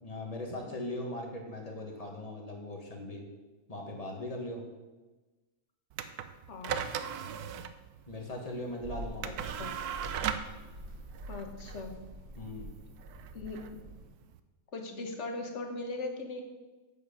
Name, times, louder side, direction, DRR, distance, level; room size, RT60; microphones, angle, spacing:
voice 1, 0.0-3.2 3.7-4.6 8.1-9.2 12.4-12.7, left 1 dB, 25° left, 0 dB, 1.5 m, -39 dB
sound 1, 5.9-14.4, right 8 dB, 75° right, 1.1 m, -39 dB
voice 2, 6.5-6.8 9.2-9.3 9.6-9.7 11.3-11.9 13.3-13.6 14.7-16.4, left 3 dB, 50° left, 4 dB, 1.4 m, -39 dB
sound 2, 8.8-14.1, right 1 dB, 40° right, 2.6 m, -46 dB
8.8 x 7.7 x 5.2 m, 1.2 s
omnidirectional pair, 1.7 m